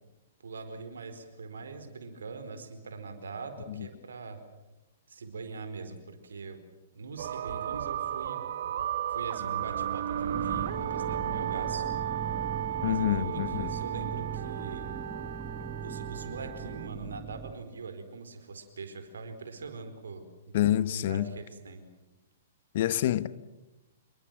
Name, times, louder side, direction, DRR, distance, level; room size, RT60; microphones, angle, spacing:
voice 1, 0.4-4.4 5.1-6.6 6.9-8.4 9.1-11.9 12.8-14.9 15.6-20.5 20.9-21.8, right 4 dB, 70° right, 4.5 m, -42 dB
sound 1, 7.2-16.9, right 10 dB, 55° right, 1.1 m, -34 dB
sound 2, 10.3-17.5, right 6 dB, 10° right, 1.5 m, -40 dB
voice 2, 12.8-13.7 20.5-21.3 22.7-23.3, left 12 dB, 50° left, 1.1 m, -27 dB
27.0 x 22.5 x 7.6 m
figure-of-eight pair, 115°, 0 cm